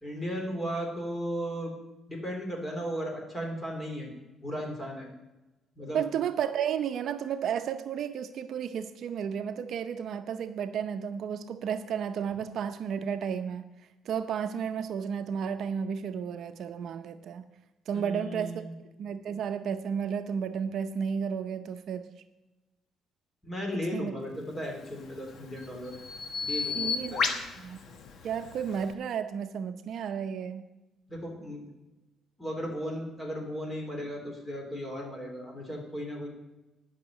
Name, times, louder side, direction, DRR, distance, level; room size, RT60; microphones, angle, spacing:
voice 1, 0.0-1.7 2.1-4.1 4.4-5.1 5.8-6.0 17.9-18.7 23.4-25.9 26.4-27.3 31.1-31.6 32.4-36.3, equal, 15° left, 1 dB, 3.5 m, -36 dB
voice 2, 5.9-13.6 14.0-17.5 17.9-18.7 19.0-22.1 23.9-24.1 26.7-27.2 27.6-27.8 28.2-30.6, right 7 dB, 60° right, 9 dB, 0.7 m, -32 dB
Bird vocalization bird call bird song, 24.7-28.9, left 5 dB, 55° left, 1.2 m, -34 dB
10.5 x 6.4 x 9.0 m, 1.1 s
cardioid pair, 120°, 0 cm